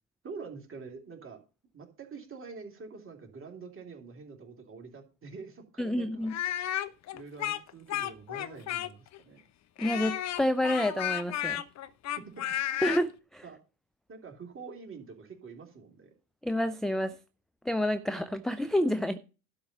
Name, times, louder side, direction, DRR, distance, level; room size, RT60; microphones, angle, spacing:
voice 1, 0.2-1.4 1.7-6.3 7.1-9.4 12.4-12.8 13.4-13.6 14.1-16.1, right 5 dB, 30° right, 3.1 m, -46 dB
voice 2, 5.8-6.3 9.8-11.6 12.8-13.4 16.4-17.2 17.6-19.2, left 1 dB, ahead, 0.6 m, -29 dB
Speech, 6.3-9.2 9.8-13.0, left 12 dB, 45° left, 0.9 m, -33 dB
12.0 x 4.7 x 6.9 m
hypercardioid pair, 65°, 39 cm